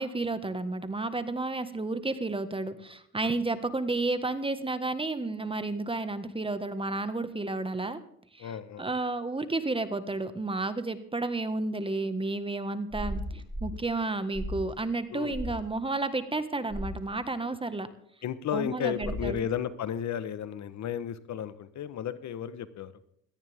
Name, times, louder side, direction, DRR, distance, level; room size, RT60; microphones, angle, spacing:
voice 1, 0.0-8.0 8.3-8.5 8.8-17.9 18.5-19.4, right 2 dB, 20° right, 11 dB, 1.7 m, -31 dB
voice 2, 8.4-8.8 15.1-15.3 18.2-22.9, left 9 dB, 65° left, 14 dB, 1.3 m, -33 dB
sound 1, 12.9-13.8 14.3-14.7 15.3-15.6 16.7-17.0 19.0-19.4, equal, 15° left, 2.3 m, -35 dB
17.5 x 14.0 x 3.6 m, 0.71 s
cardioid pair, 90°, 30 cm